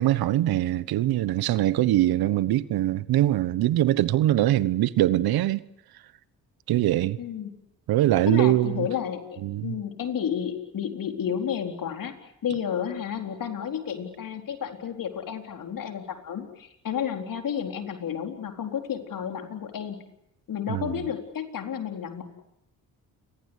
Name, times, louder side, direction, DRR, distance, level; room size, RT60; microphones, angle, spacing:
voice 1, 0.0-5.6 6.7-7.2 7.9-8.9 9.4-9.8 20.7-20.9, right 14 dB, 80° right, 1.2 m, -22 dB
voice 2, 7.2-7.5 8.3-12.2 12.4-20.0 20.5-22.2, left 8 dB, 60° left, 4.2 m, -31 dB
29.5 x 22.5 x 8.3 m
cardioid pair, 75°, 37 cm